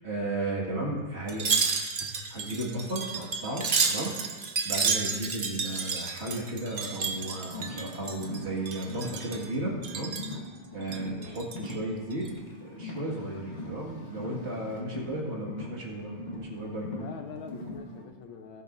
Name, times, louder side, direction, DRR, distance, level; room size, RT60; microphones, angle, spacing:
voice 1, 0.0-1.6 2.0-4.2 4.6-10.1 10.7-12.3 12.6-16.9, right 1 dB, 35° right, -3 dB, 2.2 m, -34 dB
Wind chime, 1.3-8.4 8.7-9.5 9.8-10.4 10.8-11.7 12.1-12.3, right 5 dB, 80° right, 0.4 m, -31 dB
Car, 6.9-18.0, left 1 dB, 30° left, 1.0 m, -41 dB
voice 2, 11.1-11.4 17.0-18.6, left 6 dB, 85° left, 5 dB, 1.7 m, -44 dB
18.5 x 6.8 x 2.7 m, 1.4 s
omnidirectional pair, 2.1 m